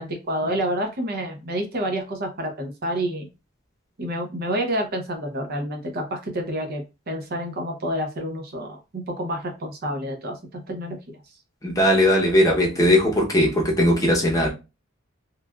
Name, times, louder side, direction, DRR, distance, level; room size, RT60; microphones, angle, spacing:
voice 1, 0.0-3.3 4.0-11.2, equal, 50° right, 0.6 m, -29 dB
voice 2, 11.6-14.5, left 1 dB, 15° left, 0.7 m, -19 dB
3.1 x 2.3 x 2.3 m
head